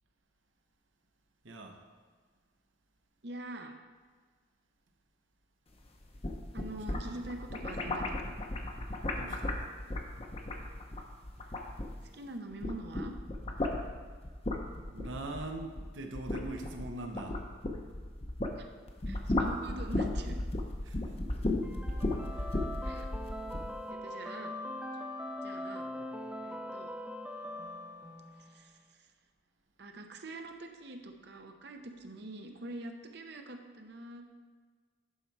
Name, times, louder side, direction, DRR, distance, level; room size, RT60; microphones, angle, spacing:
voice 1, 1.4-1.9 6.7-7.2 9.2-9.8 14.9-17.4 20.8-21.2 22.3-22.6, right 2 dB, 85° right, 3 dB, 1.0 m, -43 dB
voice 2, 3.2-3.8 6.5-8.3 12.1-13.1 18.6-18.7 19.1-20.4 22.8-23.1 23.9-24.5 25.4-25.9 26.4-27.0 28.4-29.1 29.8-34.4, right 2 dB, 60° right, 5 dB, 0.8 m, -45 dB
sound 1, 6.0-12.2 12.5-18.6 18.9-23.7, left 2 dB, 30° left, 0.7 m, -35 dB
sound 2, 21.6-28.6, left 1 dB, 5° right, 0.5 m, -41 dB
11.0 x 4.2 x 4.7 m, 1.5 s
head